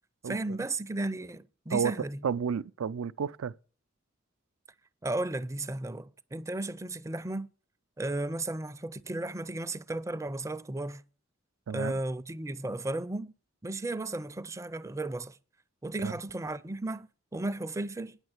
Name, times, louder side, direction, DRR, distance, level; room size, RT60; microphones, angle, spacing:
voice 1, 0.2-2.2 5.0-7.5 8.0-11.0 11.7-13.3 13.6-15.4 15.8-18.2, right 2 dB, 15° right, 0.4 m, -34 dB
voice 2, 2.2-3.5 11.7-11.9 16.0-16.1, right 7 dB, 85° right, 0.4 m, -31 dB
9.8 x 6.3 x 7.8 m
head